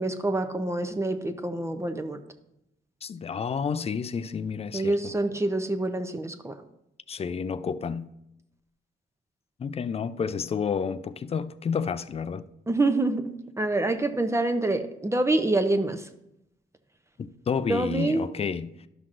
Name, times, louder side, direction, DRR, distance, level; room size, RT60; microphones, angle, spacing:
voice 1, 0.0-2.2 4.7-6.5 12.7-16.0 17.7-18.3, right 2 dB, 15° right, 0.6 m, -26 dB
voice 2, 3.0-5.1 7.1-8.1 9.6-12.4 17.2-18.7, left 6 dB, 30° left, 0.4 m, -30 dB
12.5 x 5.8 x 2.5 m
cardioid pair, 100°, 20 cm